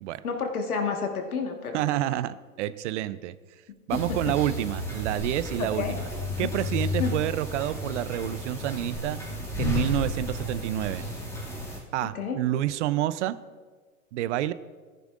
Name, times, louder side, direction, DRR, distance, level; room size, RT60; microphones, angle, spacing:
voice 1, 0.2-1.8 3.9-4.3 5.8-6.0 6.4-6.5 7.0-7.1 12.2-12.4, left 5 dB, 90° left, 4 dB, 1.6 m, -30 dB
voice 2, 1.7-3.3 3.9-6.0 6.4-9.2 9.6-11.1 11.9-13.3 14.1-14.5, right 13 dB, 55° right, 16 dB, 0.5 m, -28 dB
sound 1, 3.9-11.8, left 1 dB, 5° left, 2.1 m, -32 dB
14.5 x 10.0 x 2.5 m, 1.4 s
hypercardioid pair, 115°, 43 cm